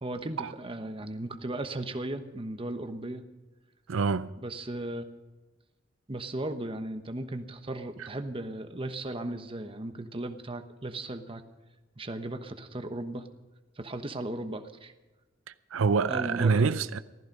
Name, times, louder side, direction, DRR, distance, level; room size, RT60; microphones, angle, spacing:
voice 1, 0.0-3.2 4.4-5.0 6.1-11.4 12.0-13.3 13.8-14.9 16.1-16.7, right 1 dB, 25° right, 1.1 m, -36 dB
voice 2, 3.9-4.3 8.0-8.1 15.7-17.0, right 5 dB, 90° right, 0.5 m, -26 dB
15.5 x 14.0 x 5.3 m
head